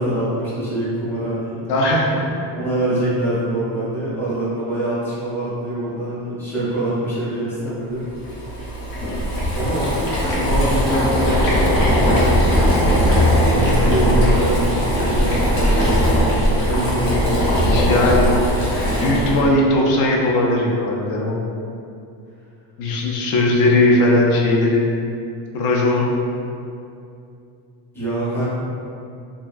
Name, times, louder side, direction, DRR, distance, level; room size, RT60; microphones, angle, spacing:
voice 1, 0.0-1.6 2.5-8.1 9.6-12.1 13.4-18.4 18.9-19.5 27.9-28.4, right 1 dB, 5° left, -10 dB, 0.5 m, -24 dB
voice 2, 1.7-2.2 7.6-7.7 12.1-12.2 13.6-14.4 17.6-18.3 19.0-21.5 22.8-24.9 25.5-26.1, left 2 dB, 60° left, -1 dB, 0.5 m, -19 dB
Boiling, 8.2-19.5, equal, 80° left, 1.1 m, -19 dB
2.8 x 2.3 x 2.4 m, 2.5 s
cardioid pair, 165°, 43 cm